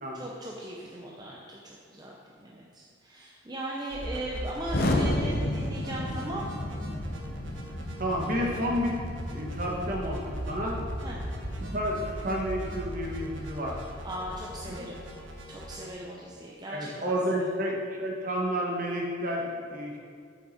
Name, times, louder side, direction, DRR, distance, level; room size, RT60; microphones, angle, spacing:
voice 1, 0.1-6.4 11.0-11.2 14.0-15.0 15.5-17.2, right 1 dB, 20° right, -3 dB, 0.7 m, -38 dB
sound 1, 3.9-15.9, right 1 dB, 80° right, 1.2 m, -40 dB
Explosion, 4.7-14.6, left 1 dB, 50° left, 0.8 m, -34 dB
voice 2, 8.0-9.0 9.3-10.8 11.6-13.8 14.7-14.9 16.7-20.0, equal, 45° right, -1 dB, 1.4 m, -30 dB
8.4 x 7.0 x 4.3 m, 2.1 s
head